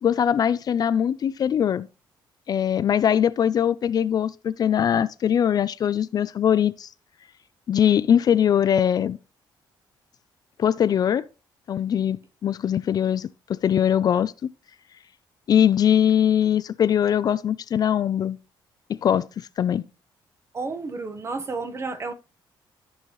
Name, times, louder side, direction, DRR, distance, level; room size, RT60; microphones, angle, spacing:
voice 1, 0.0-1.9 2.5-6.9 7.7-9.2 10.6-11.3 11.7-14.5 15.5-18.4 18.9-19.3 19.6-19.8, left 9 dB, 50° left, 0.4 m, -21 dB
voice 2, 20.5-22.1, right 3 dB, 30° right, 1.2 m, -31 dB
13.5 x 5.5 x 3.1 m
cardioid pair, 115°, 9 cm